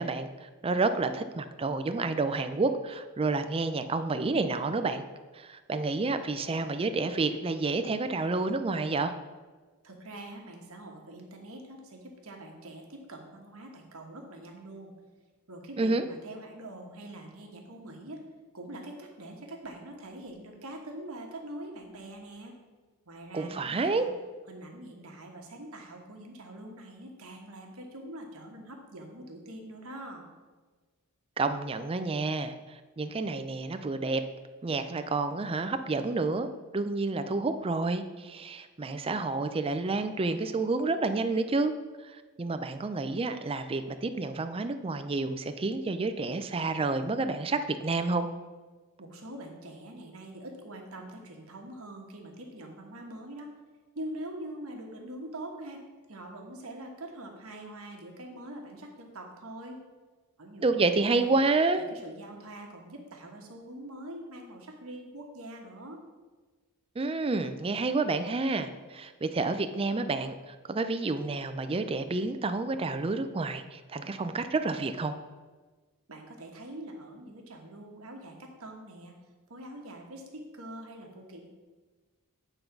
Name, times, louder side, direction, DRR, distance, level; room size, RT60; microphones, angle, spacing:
voice 1, 0.0-5.0 5.3-9.1 15.8-16.0 23.3-24.0 31.4-32.5 33.0-34.2 34.6-36.5 36.7-41.7 42.4-48.3 60.6-61.8 67.0-75.1, right 3 dB, 25° right, 9 dB, 0.4 m, -29 dB
voice 2, 9.8-14.9 15.5-18.2 18.5-22.5 23.1-24.1 24.5-30.3 49.0-53.5 53.9-55.8 56.1-59.8 60.4-61.4 61.9-66.0 76.1-79.1 79.5-81.5, right 1 dB, 70° right, 1 dB, 1.4 m, -44 dB
8.9 x 3.9 x 5.9 m, 1.3 s
head